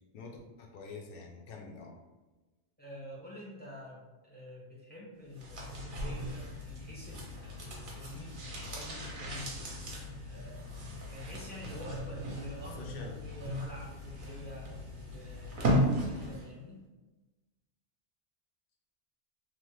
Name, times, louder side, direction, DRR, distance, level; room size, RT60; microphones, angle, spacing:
voice 1, 0.1-2.0 12.8-13.2, left 4 dB, 60° left, 1 dB, 0.7 m, -46 dB
voice 2, 2.8-9.7 10.2-16.8, left 1 dB, 10° left, -6 dB, 0.6 m, -47 dB
sound 1, 5.3-16.5 16.8-16.9, equal, 55° right, 0.8 m, -36 dB
3.0 x 2.0 x 3.1 m, 1.2 s
omnidirectional pair, 1.2 m